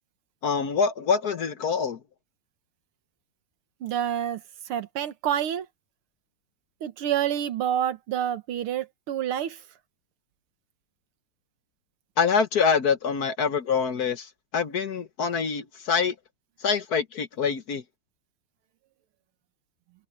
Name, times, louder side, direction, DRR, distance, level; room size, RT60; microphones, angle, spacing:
voice 1, 0.4-2.0 12.2-16.1 16.6-17.8, left 6 dB, 55° left, 1.4 m, -25 dB
voice 2, 3.8-4.4 4.7-5.7 6.8-9.6, right 10 dB, 85° right, 2.1 m, -28 dB
omnidirectional pair, 2.3 m